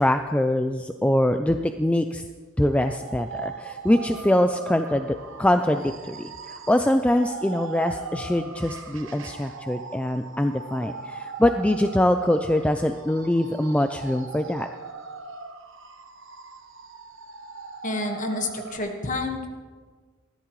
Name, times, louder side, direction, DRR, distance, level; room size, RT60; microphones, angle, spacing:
voice 1, 0.0-2.2 2.6-14.7, left 1 dB, 5° left, 7 dB, 0.3 m, -23 dB
sound 1, 2.7-18.8, right 4 dB, 60° right, 1.0 m, -40 dB
voice 2, 17.8-19.5, left 2 dB, 35° left, 4 dB, 1.5 m, -29 dB
20.5 x 14.5 x 3.2 m, 1.5 s
head